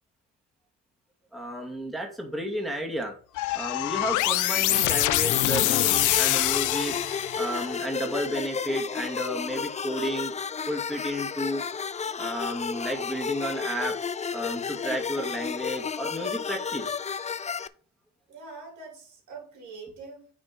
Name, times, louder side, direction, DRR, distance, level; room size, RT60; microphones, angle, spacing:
voice 1, 1.3-3.1 3.5-10.3 10.7-11.6 12.2-13.9 14.3-17.0, equal, ahead, 2.2 m, -32 dB
sound 1, 3.4-7.7, left 16 dB, 80° left, 0.5 m, -25 dB
sound 2, 4.7-17.7, left 6 dB, 25° left, 0.5 m, -32 dB
voice 2, 18.3-20.3, right 4 dB, 70° right, 3.6 m, -44 dB
8.9 x 4.4 x 4.5 m
cardioid pair, 90°, 30 cm